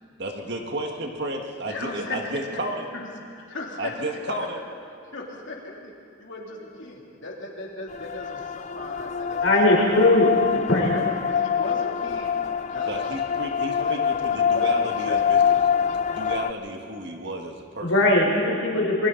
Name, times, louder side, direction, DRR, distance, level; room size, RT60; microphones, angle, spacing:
voice 1, 0.2-2.9 3.8-4.6 12.9-17.9, right 1 dB, 50° right, 2 dB, 1.9 m, -32 dB
voice 2, 1.7-2.6 2.9-3.1 3.3-4.3 5.1-5.9 6.2-9.5 9.9-10.0 10.7-12.4 12.7-13.0 13.8-14.0 14.3-15.6 18.7-18.9, left 2 dB, 60° left, -2 dB, 3.3 m, -37 dB
sound 1, 7.9-16.5, left 7 dB, 35° left, 0.4 m, -25 dB
voice 3, 9.4-10.3 10.7-11.0 17.8-19.1, left 1 dB, 80° left, -2 dB, 4.8 m, -19 dB
27.5 x 22.5 x 4.2 m, 2.3 s
head